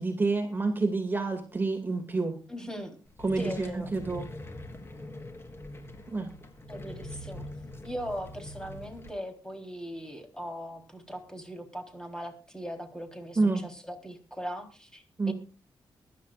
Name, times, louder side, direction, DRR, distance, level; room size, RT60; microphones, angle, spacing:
voice 1, 0.0-2.4 3.2-4.3 6.1-6.3 13.4-13.6 15.2-15.3, right 3 dB, 25° right, 5 dB, 2.2 m, -28 dB
voice 2, 2.5-3.0 3.4-4.0 6.7-7.4 7.8-15.3, equal, 10° left, 4 dB, 3.7 m, -39 dB
sound 1, 3.0-9.1, left 1 dB, 30° left, 3.8 m, -43 dB
24.0 x 11.5 x 2.5 m, 0.35 s
cardioid pair, 110°, 9 cm